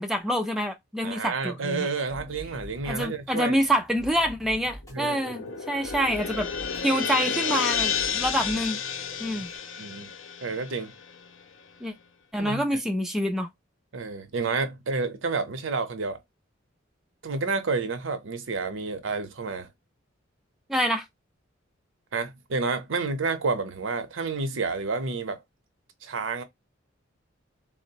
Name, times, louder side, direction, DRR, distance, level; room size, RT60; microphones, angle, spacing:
voice 1, 0.0-1.9 2.9-6.5 6.8-8.8 9.2-9.5 11.8-11.9 12.3-13.5 20.7-21.1, equal, ahead, 0.3 m, -26 dB
voice 2, 1.0-3.6 4.9-5.6 9.8-10.1 10.4-10.9 12.4-12.8 13.9-16.2 17.2-19.7 22.1-25.4 26.0-26.4, right 4 dB, 75° right, 0.6 m, -30 dB
sound 1, 2.1-9.6, equal, 15° left, 1.0 m, -46 dB
sound 2, 4.8-11.4, left 7 dB, 75° left, 0.5 m, -31 dB
3.7 x 2.0 x 2.7 m
head